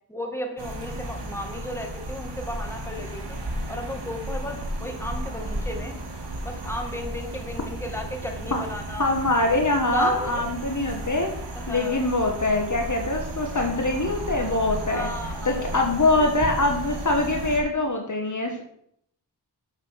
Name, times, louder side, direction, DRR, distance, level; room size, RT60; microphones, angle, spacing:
voice 1, 0.1-3.4 3.7-6.0 6.4-9.1 9.9-10.5 11.6-12.0 14.9-15.8 16.2-16.3, equal, 5° left, 2 dB, 2.2 m, -33 dB
sound 1, 0.6-17.6, right 1 dB, 80° right, 1.9 m, -34 dB
voice 2, 9.0-11.3 11.7-15.1 15.4-18.6, left 2 dB, 45° left, 3 dB, 1.4 m, -24 dB
8.0 x 6.7 x 6.4 m, 0.71 s
wide cardioid pair, 55°, 41 cm